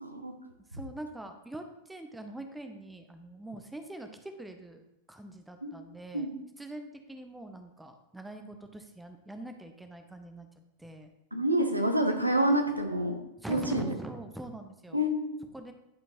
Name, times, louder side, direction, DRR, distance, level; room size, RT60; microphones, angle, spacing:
voice 1, 0.0-0.3 5.6-5.7 6.1-6.3 11.3-13.2 13.5-13.9 14.9-15.3, equal, 85° right, 4 dB, 0.8 m, -27 dB
voice 2, 0.7-4.8 5.1-6.3 6.6-10.5 10.8-11.1 13.4-15.1 15.5-15.7, right 1 dB, 5° right, 6 dB, 0.6 m, -43 dB
10.5 x 4.5 x 3.0 m, 0.91 s
figure-of-eight pair, 90°, 0 cm